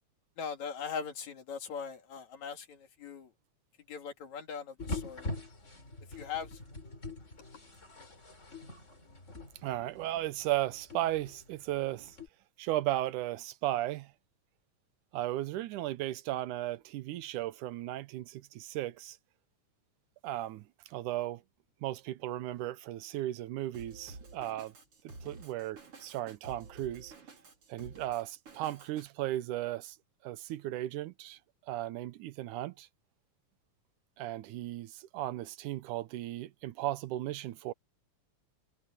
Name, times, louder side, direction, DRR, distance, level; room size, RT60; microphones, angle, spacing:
voice 1, 0.4-3.3 3.9-5.4 6.2-6.6, left 6 dB, 70° left, 3.6 m, -40 dB
sound 1, 4.8-12.3, left 2 dB, 25° left, 4.2 m, -44 dB
voice 2, 9.6-12.2 12.6-14.1 15.1-19.2 20.2-21.4 21.8-24.7 25.0-27.1 27.7-30.0 30.2-31.4 31.7-32.9 34.2-37.7, right 15 dB, 90° right, 2.3 m, -36 dB
Drum kit, 23.7-29.1, right 3 dB, 45° right, 5.0 m, -51 dB
omnidirectional pair, 3.4 m